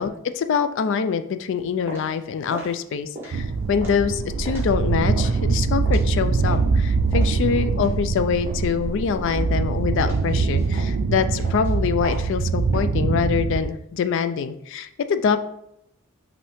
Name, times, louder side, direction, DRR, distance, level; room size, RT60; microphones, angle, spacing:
voice 1, 0.0-15.4, left 6 dB, 60° left, 11 dB, 0.3 m, -24 dB
sound 1, 1.5-6.8 7.1-8.9 9.3-9.7 10.0-12.8, right 1 dB, 10° right, 1.1 m, -39 dB
sound 2, 3.3-13.7, right 4 dB, 75° right, 0.4 m, -23 dB
5.4 x 2.7 x 3.4 m, 0.77 s
head